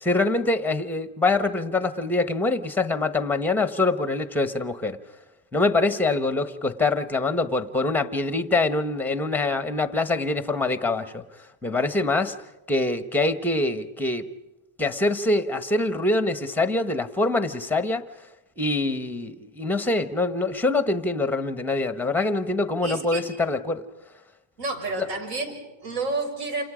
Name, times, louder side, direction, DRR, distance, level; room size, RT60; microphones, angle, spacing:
voice 1, 0.0-5.0 5.5-11.2 11.6-12.3 12.7-14.3 14.8-18.0 18.6-23.8 25.0-25.1, left 2 dB, 5° left, 10 dB, 1.0 m, -24 dB
voice 2, 22.8-23.3 24.6-26.6, right 3 dB, 60° right, 6 dB, 6.2 m, -30 dB
29.5 x 27.5 x 5.0 m, 1.0 s
cardioid pair, 155°, 47 cm